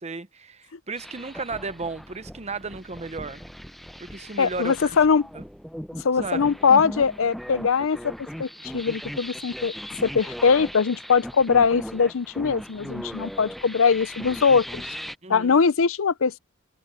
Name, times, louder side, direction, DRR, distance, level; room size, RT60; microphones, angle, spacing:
voice 1, 0.0-3.4 4.0-5.0 5.3-5.4 6.2-6.6 15.2-15.6, right 3 dB, 30° right, 0.9 m, -34 dB
sound 1, 1.0-15.2, equal, ahead, 0.6 m, -38 dB
voice 2, 4.4-5.3 6.0-8.1 8.4-9.7 10.0-14.9 15.3-16.4, left 5 dB, 70° left, 0.6 m, -21 dB
head